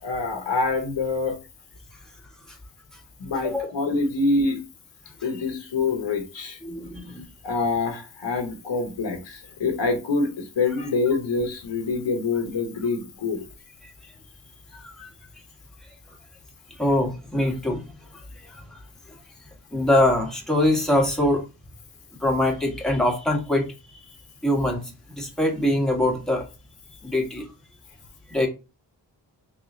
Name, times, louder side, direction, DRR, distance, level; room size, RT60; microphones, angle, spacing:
voice 1, 0.0-1.4 3.2-4.6 5.2-6.6 7.4-13.5, left 3 dB, 75° left, 0.9 m, -25 dB
voice 2, 6.6-7.2 14.7-15.1 16.7-17.8 18.1-18.8 19.1-19.2 19.7-21.4 22.2-24.0 24.4-26.4 27.0-27.5 28.3-28.5, left 1 dB, ahead, 1.4 m, -24 dB
3.6 x 3.0 x 3.6 m
wide cardioid pair, 75°, 44 cm